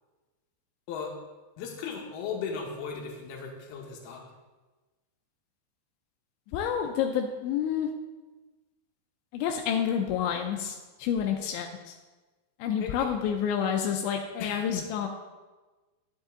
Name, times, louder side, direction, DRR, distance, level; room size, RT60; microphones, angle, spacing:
voice 1, 1.6-4.2 12.8-13.1 14.4-14.6, left 6 dB, 70° left, -1 dB, 3.0 m, -36 dB
voice 2, 6.5-7.9 9.3-12.0 12.6-15.1, left 8 dB, 85° left, 3 dB, 2.9 m, -29 dB
9.9 x 8.0 x 3.8 m, 1.2 s
omnidirectional pair, 5.3 m